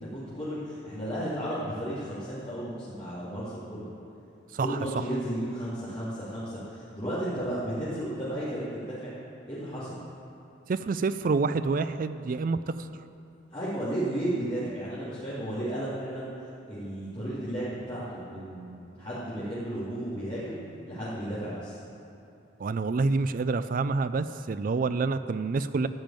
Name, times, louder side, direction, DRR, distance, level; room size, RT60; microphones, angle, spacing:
voice 1, 0.1-3.8 4.6-9.1 9.5-9.9 13.5-16.3 16.7-20.6 20.9-21.8, right 1 dB, 30° left, -13 dB, 2.8 m, -33 dB
voice 2, 10.7-12.9 22.6-25.9, right 4 dB, 45° right, 12 dB, 0.4 m, -27 dB
14.5 x 5.3 x 9.0 m, 2.7 s
head